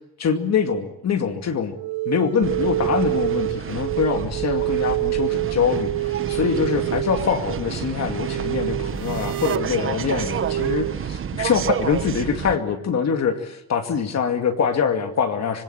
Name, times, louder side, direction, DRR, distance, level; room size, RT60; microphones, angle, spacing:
voice 1, 0.2-1.7 2.1-15.6, left 6 dB, 45° left, 6 dB, 2.4 m, -24 dB
sound 1, 1.7-10.9, right 16 dB, 70° right, 1.1 m, -27 dB
sound 2, 2.4-12.6, right 7 dB, 35° right, 1.2 m, -30 dB
26.0 x 21.5 x 8.9 m, 0.89 s
cardioid pair, 150°, 36 cm